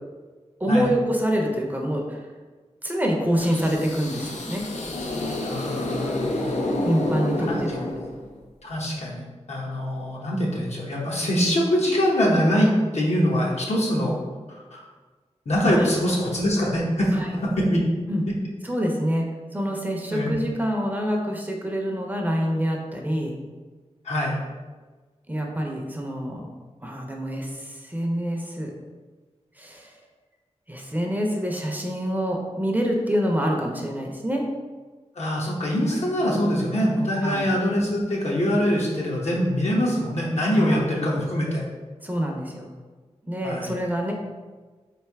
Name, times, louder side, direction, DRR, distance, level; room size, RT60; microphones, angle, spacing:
voice 1, 0.6-2.3 2.8-4.6 6.8-7.9 15.7-15.9 17.1-17.3 18.1-18.2 18.6-23.3 25.3-26.5 26.8-28.7 29.6-30.0 30.7-34.4 37.2-37.4 40.5-40.8 42.0-42.7 43.3-44.1, equal, 15° right, 0 dB, 0.6 m, -26 dB
sound 1, 3.3-8.4, left 1 dB, 85° left, 0.6 m, -29 dB
voice 2, 5.4-6.3 7.4-7.6 8.6-9.2 9.5-14.2 14.5-14.8 15.5-17.2 17.4-17.8 20.1-20.4 24.0-24.4 35.2-41.6 43.4-43.7, equal, 70° left, -3 dB, 0.9 m, -23 dB
3.3 x 2.6 x 4.6 m, 1.3 s
wide cardioid pair, 95°, 12 cm